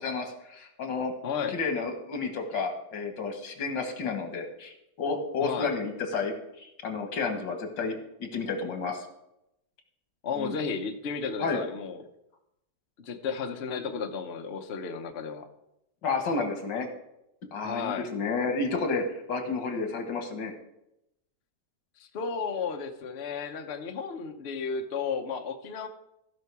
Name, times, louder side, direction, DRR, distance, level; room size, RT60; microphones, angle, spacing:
voice 1, 0.0-1.1 1.5-8.0 8.2-9.1 10.4-10.6 11.4-11.6 16.0-16.9 17.4-20.5, left 4 dB, 85° left, 5 dB, 2.1 m, -31 dB
voice 2, 1.2-1.6 5.4-5.7 10.2-12.0 13.0-15.5 17.6-18.1 22.0-25.9, left 5 dB, 45° left, 5 dB, 0.9 m, -33 dB
15.0 x 5.7 x 4.7 m, 0.84 s
omnidirectional pair, 1.9 m